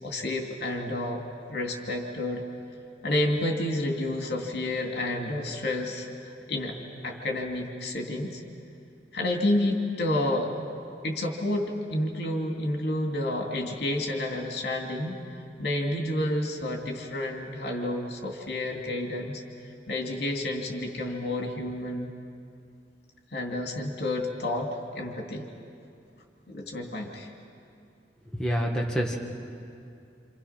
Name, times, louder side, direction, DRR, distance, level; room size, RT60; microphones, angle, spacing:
voice 1, 0.0-1.2 1.5-2.4 3.0-6.1 6.5-6.7 7.0-8.4 9.1-10.5 11.0-15.2 15.6-19.4 19.9-22.1 23.3-25.4 26.5-27.3, left 1 dB, 65° left, 1 dB, 2.7 m, -30 dB
voice 2, 28.3-29.2, equal, 5° left, -2 dB, 1.8 m, -27 dB
28.0 x 26.5 x 5.9 m, 2.5 s
head